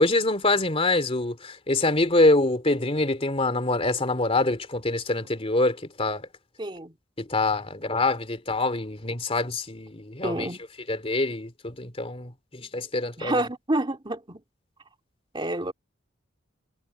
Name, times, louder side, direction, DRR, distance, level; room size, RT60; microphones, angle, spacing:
voice 1, 0.0-6.2 7.2-10.5 10.9-13.3, left 2 dB, 30° left, 2.9 m, -25 dB
voice 2, 6.6-6.9 10.2-10.6 13.2-14.4 15.3-15.7, right 1 dB, 25° right, 2.8 m, -28 dB
head